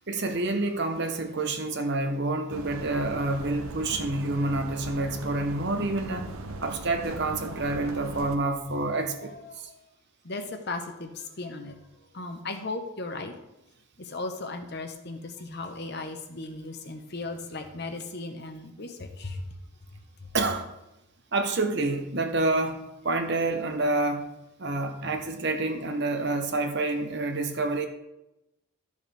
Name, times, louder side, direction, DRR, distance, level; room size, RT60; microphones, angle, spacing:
voice 1, 0.1-6.3 6.6-9.7 20.3-20.7 21.3-24.3 24.6-27.9, right 2 dB, 50° right, 6 dB, 1.0 m, -28 dB
sound 1, 2.5-8.4, right 2 dB, 80° right, 0.9 m, -39 dB
voice 2, 10.2-11.7 12.1-13.3 14.1-19.4, left 3 dB, 50° left, 6 dB, 1.0 m, -36 dB
12.5 x 6.5 x 3.4 m, 0.93 s
head